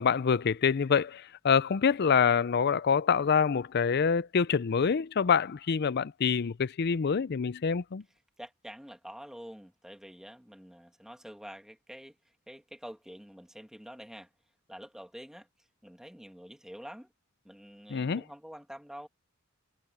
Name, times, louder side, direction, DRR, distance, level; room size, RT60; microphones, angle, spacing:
voice 1, 0.0-8.0 17.9-18.2, left 6 dB, 55° left, 0.5 m, -26 dB
voice 2, 8.4-12.2 12.5-14.3 14.7-15.5 15.8-17.1 17.4-19.1, equal, 5° right, 1.7 m, -47 dB
head